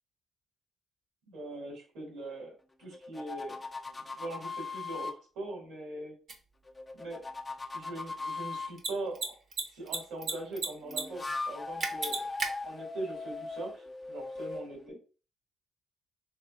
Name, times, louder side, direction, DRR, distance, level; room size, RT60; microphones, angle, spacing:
voice 1, 1.3-3.6 3.9-6.1 6.9-7.3 7.7-9.4 9.7-15.0, right 2 dB, 85° right, -1 dB, 2.1 m, -41 dB
sound 1, 2.9-5.2 6.7-8.7 10.9-14.9, left 3 dB, 25° left, 0.6 m, -39 dB
Mechanisms, 6.3-6.4 8.7-8.9 9.1-9.3 9.5-10.3 10.6-11.0 11.3-11.4 11.8-12.5, right 4 dB, 60° right, 0.9 m, -32 dB
4.3 x 3.2 x 2.4 m, 0.36 s
cardioid pair, 90°, 0 cm